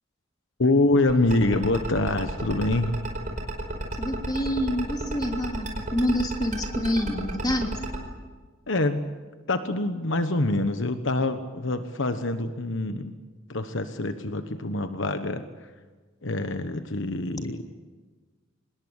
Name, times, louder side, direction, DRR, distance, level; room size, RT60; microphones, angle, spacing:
voice 1, 0.6-2.9 8.7-9.0 9.5-13.1 13.5-15.7 16.2-17.7, left 2 dB, 65° left, 8 dB, 1.2 m, -25 dB
sound 1, 1.1-8.0, right 1 dB, 40° right, 4.8 m, -31 dB
voice 2, 4.0-7.8, equal, 20° left, 3 dB, 3.1 m, -27 dB
25.5 x 20.5 x 8.2 m, 1.4 s
head